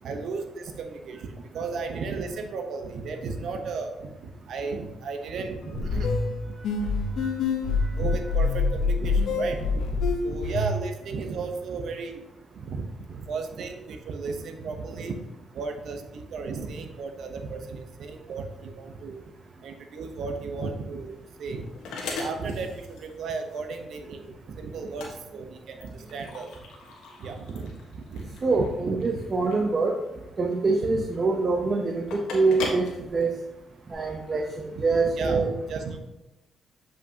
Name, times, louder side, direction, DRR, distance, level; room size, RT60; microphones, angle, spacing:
voice 1, 0.0-6.1 8.0-12.2 12.6-15.2 15.5-19.2 19.6-21.1 21.4-21.6 22.0-22.7 23.0-26.5 27.2-29.2 30.8-31.0 32.5-32.7 34.7-34.8 35.1-36.0, right 4 dB, 70° right, 5 dB, 0.9 m, -34 dB
sound 1, 5.6-10.8, left 4 dB, 75° left, 0.9 m, -26 dB
sound 2, 20.7-33.9, left 3 dB, 90° left, 1.3 m, -40 dB
voice 2, 28.4-30.0 30.4-33.3 33.9-35.5, right 3 dB, 35° right, 2 dB, 0.7 m, -25 dB
7.7 x 5.1 x 2.8 m, 1.0 s
cardioid pair, 90°, 0 cm